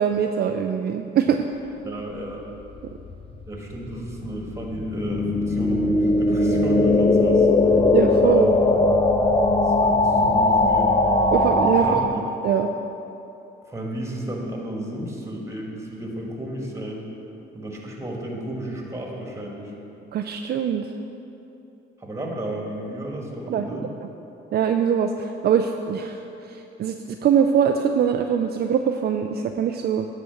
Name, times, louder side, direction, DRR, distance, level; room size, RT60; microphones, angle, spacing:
voice 1, 0.0-1.4 7.9-8.5 11.3-12.0 12.4-12.7 20.1-20.8 23.5-23.8 24.5-26.2 26.5-30.1, right 8 dB, 55° right, 5 dB, 0.4 m, -22 dB
voice 2, 1.8-2.4 3.5-7.7 8.1-8.6 9.6-10.9 11.7-12.2 13.7-17.1 17.5-19.7 22.0-23.9, right 1 dB, 15° right, -1 dB, 1.8 m, -32 dB
sound 1, 2.8-12.1, left 2 dB, 30° left, 0.7 m, -20 dB
9.8 x 4.2 x 6.9 m, 2.9 s
cardioid pair, 90°, 20 cm